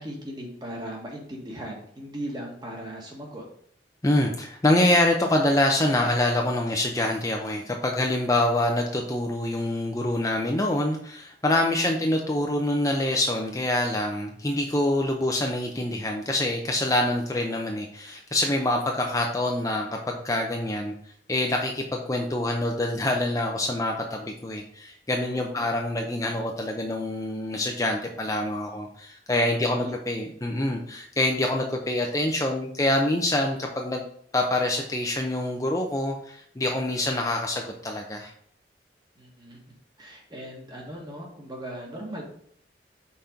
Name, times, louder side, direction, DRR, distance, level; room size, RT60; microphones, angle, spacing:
voice 1, 0.0-3.4 25.3-25.7 29.3-29.9 39.1-39.6 40.0-42.2, right 1 dB, 25° right, -1 dB, 1.5 m, -38 dB
voice 2, 4.0-20.9 21.3-34.0 34.3-38.3, left 1 dB, 20° left, 1 dB, 0.6 m, -25 dB
5.7 x 4.3 x 5.0 m, 0.64 s
head